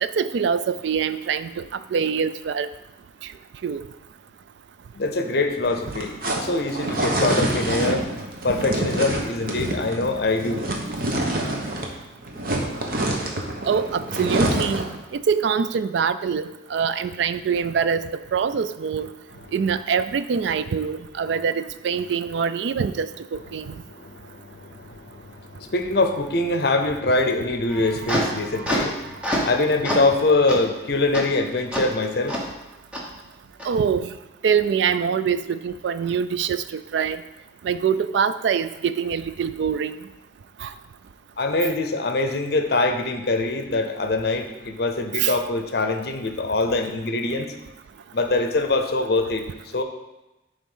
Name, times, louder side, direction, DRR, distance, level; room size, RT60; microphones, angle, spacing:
voice 1, 0.0-2.7 3.6-3.8 13.6-19.1 19.5-23.7 33.6-34.1 34.4-37.2 37.6-40.0 40.6-40.7 45.2-45.4, right 6 dB, 70° right, 13 dB, 0.3 m, -24 dB
voice 2, 4.9-8.0 8.4-10.7 19.4-19.5 23.6-32.4 41.4-47.5 48.1-49.5 49.7-49.8, left 2 dB, 55° left, 6 dB, 0.7 m, -24 dB
sound 1, 5.6-12.0 12.2-15.0, right 1 dB, 50° right, 0.9 m, -26 dB
sound 2, 27.7-29.6 29.8-30.1 30.5-30.6 31.1-31.2 31.7-31.8 32.3-32.4 32.9-33.0 33.6-33.7, equal, 5° right, 0.9 m, -26 dB
7.3 x 3.5 x 5.5 m, 1.0 s
head